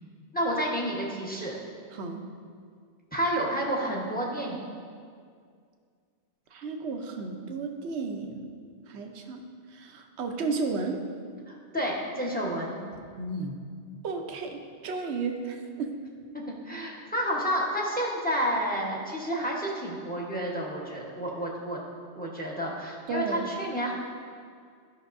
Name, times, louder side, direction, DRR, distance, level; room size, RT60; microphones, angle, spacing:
voice 1, 0.3-1.5 3.1-4.6 11.5-12.8 16.5-21.8 22.2-23.9, equal, 10° left, -3 dB, 1.0 m, -30 dB
voice 2, 1.9-2.3 6.5-8.5 8.9-11.1 13.2-13.5 14.0-16.0 23.1-23.5, right 4 dB, 70° right, 4 dB, 1.0 m, -33 dB
12.0 x 5.8 x 2.6 m, 2.1 s
omnidirectional pair, 1.2 m